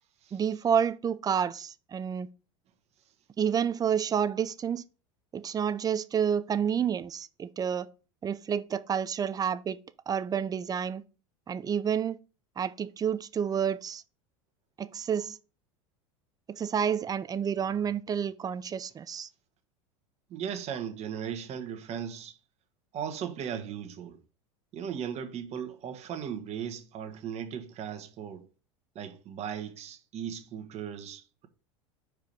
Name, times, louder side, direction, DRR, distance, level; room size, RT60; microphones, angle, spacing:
voice 1, 0.3-2.3 3.4-4.8 5.3-7.9 8.2-9.8 10.1-11.0 11.5-12.2 12.6-14.0 14.8-15.4 16.5-19.3, right 8 dB, 25° right, 0.5 m, -29 dB
voice 2, 20.3-22.3 22.9-24.2 24.7-28.5 28.9-31.5, right 8 dB, 45° right, 1.3 m, -37 dB
4.8 x 4.6 x 5.2 m
hypercardioid pair, 95°, 16 cm